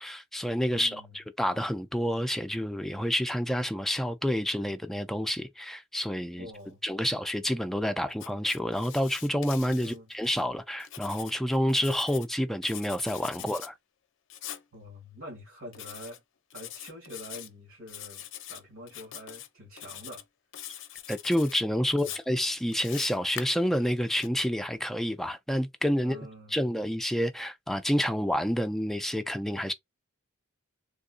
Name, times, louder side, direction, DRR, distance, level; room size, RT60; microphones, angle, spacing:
voice 1, 0.0-6.5 6.8-13.8 21.1-26.2 26.5-29.7, equal, ahead, 0.3 m, -29 dB
voice 2, 0.7-1.2 6.4-6.8 9.8-10.1 13.4-13.5 14.7-16.2 16.5-20.2 21.9-22.1 26.0-26.6, equal, 85° right, 1.7 m, -46 dB
Writing, 8.1-10.4 10.8-12.3 12.6-13.7 14.3-14.6 15.7-16.2 16.5-17.5 17.9-18.6 18.9-19.5 19.8-20.2 20.5-21.6 22.0-24.3, left 11 dB, 60° left, 0.5 m, -43 dB
3.6 x 2.5 x 2.4 m
head